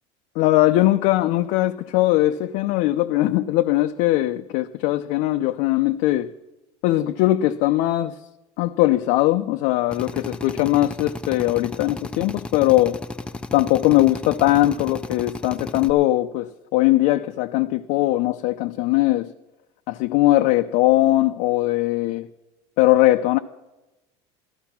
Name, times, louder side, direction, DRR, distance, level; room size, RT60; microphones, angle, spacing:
voice 1, 0.4-6.3 6.8-8.2 8.6-13.0 13.5-19.3 19.9-22.3 22.8-23.4, left 16 dB, 65° left, 0.5 m, -20 dB
Drill, 9.9-15.9, left 2 dB, 5° left, 0.4 m, -34 dB
14.0 x 12.0 x 5.8 m
cardioid pair, 140°, 14 cm